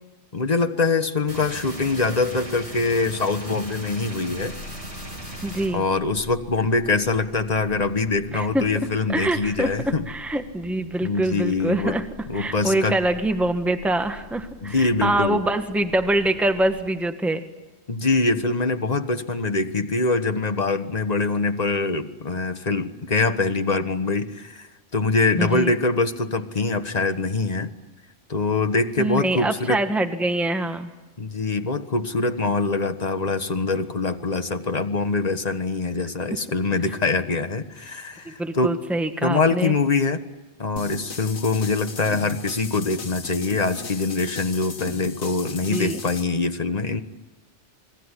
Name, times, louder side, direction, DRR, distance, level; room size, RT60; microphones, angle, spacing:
voice 1, 0.3-4.5 5.7-10.0 11.0-12.0 12.3-13.0 14.6-15.4 17.9-24.7 24.9-27.7 28.3-29.8 31.2-38.7 39.2-40.2 40.6-47.0, left 3 dB, 35° left, 8 dB, 1.4 m, -24 dB
sound 1, 1.3-5.7, right 1 dB, 85° right, 7.6 m, -37 dB
sound 2, 4.3-16.8, equal, 55° right, 5.2 m, -45 dB
voice 2, 5.4-5.8 8.3-8.7 9.1-12.0 12.3-17.4 25.4-25.7 29.0-30.9 38.4-39.7 45.7-46.0, right 1 dB, ahead, 7 dB, 1.4 m, -24 dB
sound 3, 40.8-46.2, left 4 dB, 65° left, 1.7 m, -36 dB
28.5 x 20.5 x 9.9 m, 1.1 s
omnidirectional pair, 1.2 m